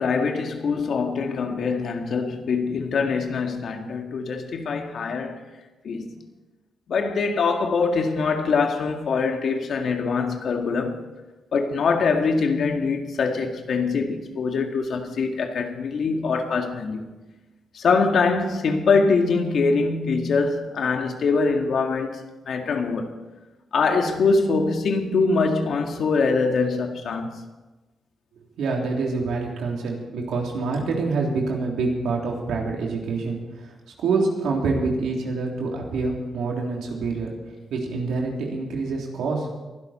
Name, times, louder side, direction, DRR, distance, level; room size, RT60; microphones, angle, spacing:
voice 1, 0.0-5.4 5.8-6.1 6.9-11.0 11.5-17.0 17.7-23.2 23.7-27.4, left 4 dB, 65° left, 1.9 m, -23 dB
voice 2, 28.6-33.7 34.0-37.3 37.7-39.5, right 3 dB, 80° right, 3.3 m, -26 dB
22.0 x 12.0 x 4.4 m
supercardioid pair, 60°, 0 cm